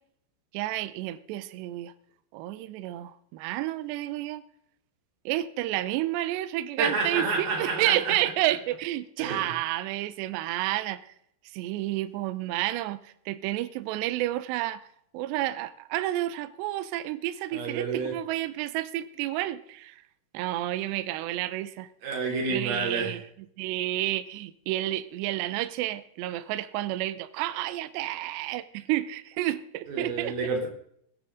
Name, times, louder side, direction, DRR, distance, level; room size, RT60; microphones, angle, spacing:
voice 1, 0.5-1.9 2.3-4.4 5.3-11.1 11.5-14.9 15.1-20.0 20.3-21.9 22.5-23.2 23.6-30.5, right 15 dB, 80° right, 14 dB, 2.5 m, -30 dB
voice 2, 6.8-8.1 9.2-9.5 17.5-18.2 22.0-23.2 29.9-30.7, right 4 dB, 50° right, 1 dB, 4.5 m, -29 dB
21.0 x 9.7 x 3.7 m, 0.67 s
omnidirectional pair, 5.7 m